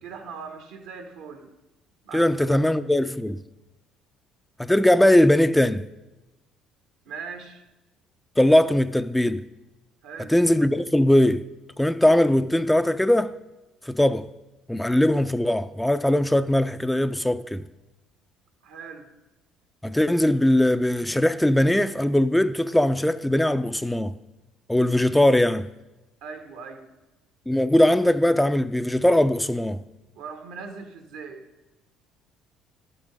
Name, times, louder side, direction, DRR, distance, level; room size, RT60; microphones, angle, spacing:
voice 1, 0.0-1.5 2.0-2.6 7.0-7.6 10.0-10.3 18.6-19.1 26.2-26.9 30.1-31.5, right 5 dB, 75° right, 1.1 m, -40 dB
voice 2, 2.1-3.4 4.6-5.9 8.4-9.5 10.3-11.4 11.8-13.3 13.9-14.3 14.7-17.6 19.8-24.1 24.7-25.7 27.5-29.8, left 1 dB, 5° left, 0.4 m, -20 dB
11.5 x 6.2 x 5.1 m
hypercardioid pair, 65°, 0 cm